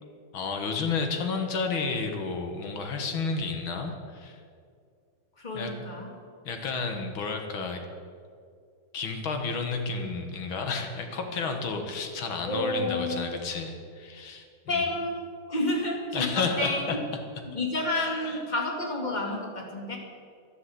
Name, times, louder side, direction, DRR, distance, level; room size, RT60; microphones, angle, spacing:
voice 1, 0.3-4.4 5.5-5.7 6.4-7.8 8.9-14.8 16.1-17.0 17.9-18.4, left 4 dB, 80° left, 4 dB, 2.3 m, -31 dB
voice 2, 5.4-6.1 12.5-13.2 14.7-17.0 17.5-20.0, left 2 dB, 20° left, 0 dB, 2.4 m, -30 dB
12.0 x 11.0 x 7.9 m, 2.3 s
omnidirectional pair, 2.2 m